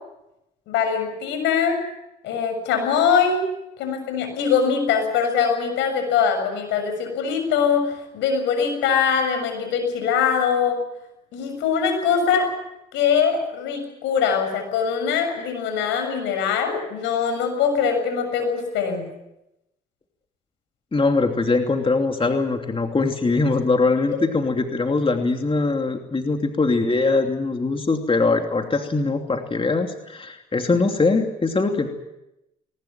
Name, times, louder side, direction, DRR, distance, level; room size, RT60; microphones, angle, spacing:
voice 1, 0.7-1.8 2.2-3.5 3.8-10.8 11.3-12.5 12.9-19.1, left 6 dB, 80° left, 7 dB, 6.9 m, -22 dB
voice 2, 20.9-31.9, left 3 dB, 30° left, 4 dB, 2.9 m, -22 dB
21.0 x 19.5 x 9.0 m, 0.89 s
supercardioid pair, 55°, 19 cm